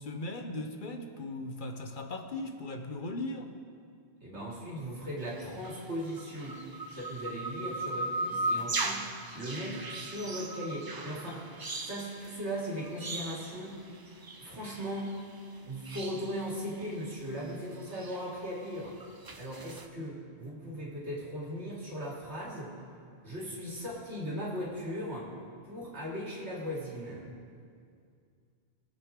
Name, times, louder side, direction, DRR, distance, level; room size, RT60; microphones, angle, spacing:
voice 1, 0.0-3.5, left 2 dB, 50° left, 5 dB, 1.0 m, -38 dB
voice 2, 4.2-9.1 9.3-11.5 11.8-13.8 14.3-15.2 15.6-19.0 19.4-22.7 23.2-25.3 25.6-27.3, equal, 80° right, -5 dB, 3.0 m, -38 dB
sound 1, 5.2-15.6 15.8-17.2 17.5-19.9, right 2 dB, 30° right, 0.4 m, -38 dB
22.0 x 7.9 x 3.7 m, 2.3 s
omnidirectional pair, 1.1 m